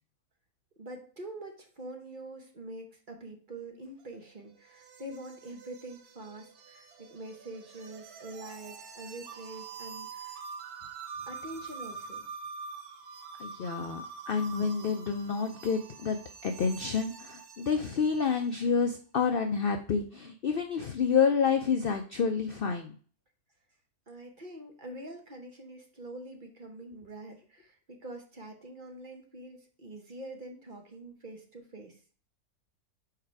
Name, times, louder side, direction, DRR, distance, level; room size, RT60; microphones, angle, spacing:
voice 1, 0.8-10.4 11.3-12.2 24.1-32.0, right 1 dB, 40° right, 3 dB, 1.0 m, -45 dB
sound 1, 4.0-18.6, right 5 dB, 75° right, 1.4 m, -45 dB
voice 2, 13.4-23.0, left 6 dB, 70° left, 6 dB, 0.5 m, -29 dB
4.8 x 4.8 x 4.6 m, 0.42 s
omnidirectional pair, 1.6 m